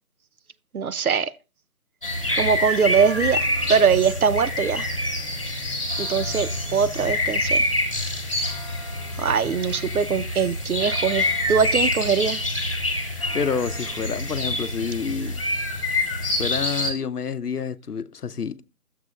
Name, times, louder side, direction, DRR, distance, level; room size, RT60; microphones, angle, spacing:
voice 1, 0.7-1.3 2.4-4.9 6.0-7.6 9.2-12.4, right 6 dB, 70° right, 0.6 m, -22 dB
sound 1, 2.0-16.9, left 1 dB, 20° left, 1.3 m, -26 dB
voice 2, 13.3-15.4 16.4-18.6, left 6 dB, 90° left, 0.7 m, -28 dB
12.5 x 7.5 x 2.3 m
figure-of-eight pair, 170°, 45 cm